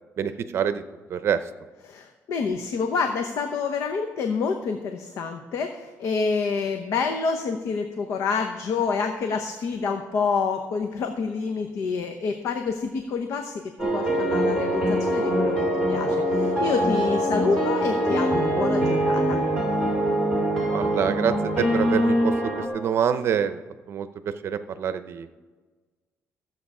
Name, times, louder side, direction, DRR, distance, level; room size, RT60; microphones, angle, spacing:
voice 1, 0.2-0.8 1.1-1.4 20.7-23.6 23.9-25.3, right 8 dB, 55° right, 11 dB, 0.6 m, -26 dB
voice 2, 1.8-13.6 13.9-19.4, left 5 dB, 65° left, 5 dB, 0.8 m, -28 dB
sound 1, 13.8-22.7, equal, 5° left, 2.7 m, -23 dB
14.5 x 7.7 x 4.9 m, 1.3 s
cardioid pair, 140°, 5 cm